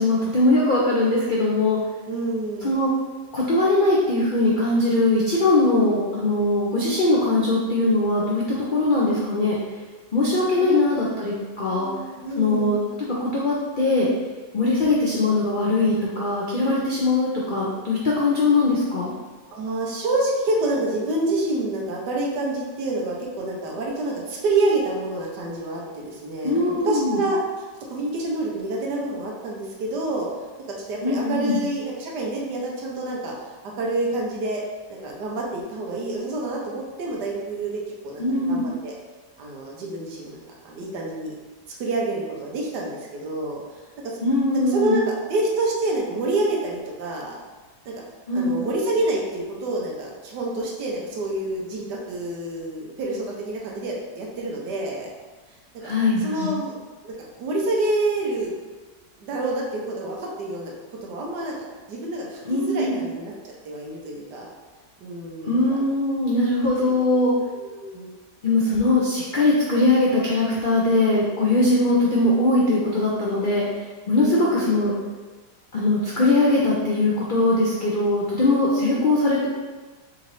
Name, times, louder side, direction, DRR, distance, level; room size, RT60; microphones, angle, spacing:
voice 1, 0.0-1.8 2.6-2.9 3.3-8.4 8.7-9.6 10.1-11.9 12.4-12.8 13.2-14.1 14.5-19.1 26.4-27.2 31.0-31.6 38.2-38.6 44.2-45.0 48.3-48.5 55.8-56.5 62.5-63.0 65.4-67.3 68.4-74.9 75.7-79.5, left 2 dB, 65° left, -6 dB, 0.5 m, -21 dB
voice 2, 2.1-2.7 10.5-10.9 11.7-12.8 16.7-16.8 19.5-27.4 27.9-30.3 30.7-33.3 33.6-34.6 34.9-38.9 39.4-41.3 41.8-43.6 44.0-44.1 44.5-47.3 47.8-47.9 48.3-55.1 55.8-55.9 56.2-56.7 57.0-58.5 59.2-60.7 61.0-61.5 61.9-64.5 65.0-65.8 66.9-67.2 67.5-68.1 74.1-74.6 78.7-78.9, right 2 dB, 75° right, -2 dB, 1.4 m, -28 dB
4.3 x 3.8 x 3.2 m, 1.3 s
omnidirectional pair, 1.8 m